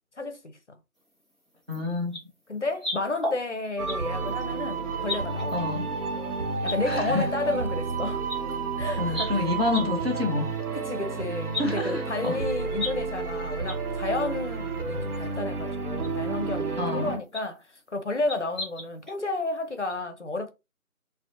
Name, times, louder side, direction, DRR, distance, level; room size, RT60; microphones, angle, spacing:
voice 1, 0.2-0.5 2.5-6.0 6.6-8.3 8.8-9.5 10.7-17.6 17.9-20.5, left 2 dB, 55° left, 0.5 m, -32 dB
sound 1, 1.7-1.8 2.1-2.2 2.8-4.0 4.3-4.4 5.0-5.6 6.1-6.2 6.6-6.8 8.0-8.1 8.3-8.4 9.1-9.3 9.7-9.8 10.2-10.3 10.6-10.7 11.5-11.6 12.1-12.9 13.2-13.3 13.7-13.8 14.2-14.3 15.2-15.3 16.0-16.1 17.3-17.5 18.3-19.2 19.5-19.6 19.9-20.0, left 2 dB, ahead, 0.5 m, -33 dB
voice 2, 1.7-2.2 5.5-5.9 6.9-7.3 9.0-10.5 11.6-12.4 16.8-17.2, left 3 dB, 45° right, 0.6 m, -28 dB
sound 2, 3.8-17.2, right 4 dB, 90° right, 0.8 m, -31 dB
sound 3, 3.9-12.7, equal, 60° right, 1.1 m, -44 dB
2.5 x 2.0 x 2.7 m
figure-of-eight pair, 180°, 44 cm